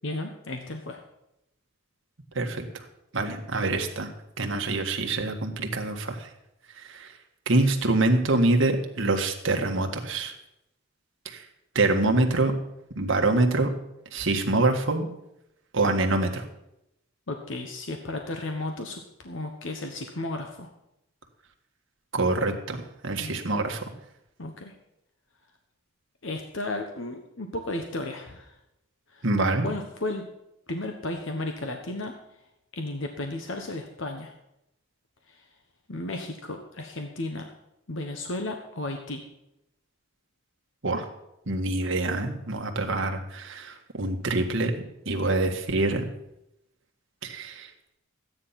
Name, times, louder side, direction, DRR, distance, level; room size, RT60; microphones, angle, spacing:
voice 1, 0.0-1.0 17.3-20.7 23.2-23.4 24.4-24.7 26.2-28.5 29.1-29.2 29.6-30.3 30.7-32.1 32.7-34.3 35.3-35.4 35.9-37.5 37.9-39.2, left 2 dB, 60° left, 4 dB, 1.2 m, -34 dB
voice 2, 2.3-2.8 3.1-4.1 4.4-6.3 6.8-7.1 7.5-10.3 11.2-11.4 11.7-12.5 12.9-13.7 14.1-15.1 15.7-16.4 22.1-23.8 29.2-29.7 40.8-41.1 41.5-44.7 45.0-46.0 47.2-47.7, right 2 dB, 65° right, 3 dB, 1.6 m, -25 dB
13.5 x 9.7 x 5.8 m, 0.85 s
head